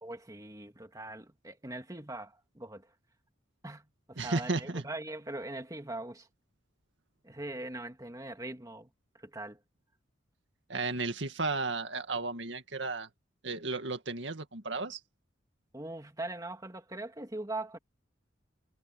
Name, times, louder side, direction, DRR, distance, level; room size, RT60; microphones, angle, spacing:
voice 1, 0.0-2.9 3.6-6.3 7.2-9.6 15.7-17.8, right 2 dB, 20° right, 2.2 m, -41 dB
voice 2, 4.2-4.8 10.7-13.1 13.4-15.0, right 3 dB, 70° right, 2.1 m, -34 dB
head